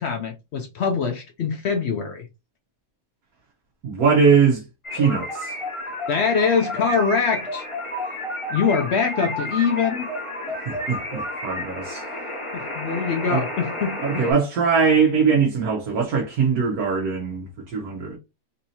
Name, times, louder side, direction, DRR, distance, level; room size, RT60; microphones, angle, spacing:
voice 1, 0.0-2.3 6.1-7.6 8.5-10.1 12.5-14.3, left 6 dB, 70° left, 0.6 m, -23 dB
voice 2, 3.8-4.6 4.9-5.5 10.7-12.0 13.3-13.4 14.0-18.2, right 5 dB, 70° right, 1.3 m, -21 dB
sound 1, 4.8-14.3, left 1 dB, 20° left, 1.1 m, -31 dB
3.9 x 2.7 x 2.7 m
omnidirectional pair, 1.7 m